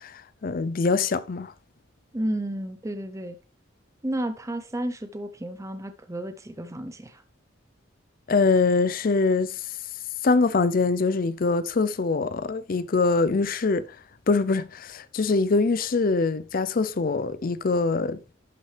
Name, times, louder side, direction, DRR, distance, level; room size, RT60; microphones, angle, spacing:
voice 1, 0.0-1.5 8.3-9.8 10.2-13.9 14.3-18.2, left 4 dB, 45° left, 0.5 m, -23 dB
voice 2, 2.1-3.4 4.0-7.2, right 1 dB, 15° right, 0.6 m, -32 dB
11.5 x 6.0 x 3.3 m
head